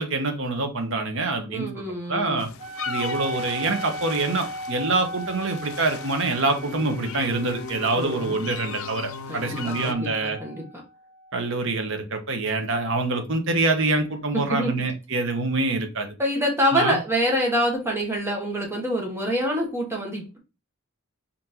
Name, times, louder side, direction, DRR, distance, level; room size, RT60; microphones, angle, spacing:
voice 1, 0.0-2.5 2.9-10.4 11.3-16.1 16.7-17.0, right 3 dB, 65° right, 1.0 m, -25 dB
voice 2, 1.5-2.5 7.9-8.4 9.3-10.6 14.3-14.9 16.2-20.4, equal, 10° right, 1.4 m, -26 dB
sound 1, 2.4-9.9, left 5 dB, 70° left, 0.5 m, -37 dB
Wind instrument woodwind instrument, 2.6-11.5, equal, 30° right, 0.4 m, -38 dB
4.2 x 3.9 x 2.8 m
head